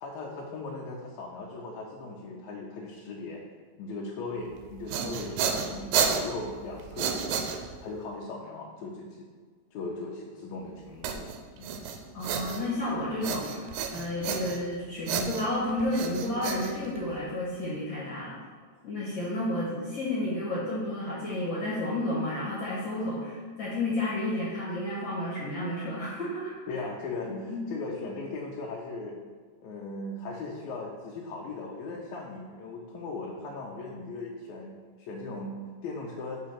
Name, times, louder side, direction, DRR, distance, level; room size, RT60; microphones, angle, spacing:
voice 1, 0.0-3.4 3.8-7.5 7.8-9.3 9.7-11.3 11.6-11.7 26.7-29.2 29.6-36.4, left 3 dB, 80° left, -2 dB, 2.0 m, -38 dB
sound 1, 4.6-8.0 11.0-12.9 13.2-14.7 15.1-17.3, right 6 dB, 90° right, 2.1 m, -31 dB
voice 2, 12.1-13.6 13.9-18.4 18.8-26.5 27.3-27.6, left 1 dB, 50° left, -7 dB, 1.7 m, -31 dB
6.4 x 3.4 x 5.7 m, 1.6 s
omnidirectional pair, 3.4 m